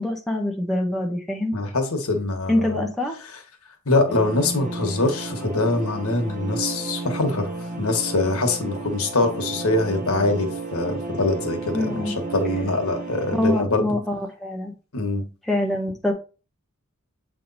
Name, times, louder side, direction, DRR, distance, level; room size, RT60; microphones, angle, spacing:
voice 1, 0.0-1.5 2.5-3.2 11.7-12.1 13.3-14.7 15.5-16.1, left 1 dB, ahead, 0 dB, 1.1 m, -24 dB
voice 2, 1.5-2.8 3.9-7.5 7.8-13.8 14.9-15.2, left 2 dB, 85° left, 5 dB, 1.4 m, -23 dB
sound 1, 4.1-13.6, right 3 dB, 35° right, 1.0 m, -33 dB
7.6 x 3.4 x 4.1 m, 0.34 s
head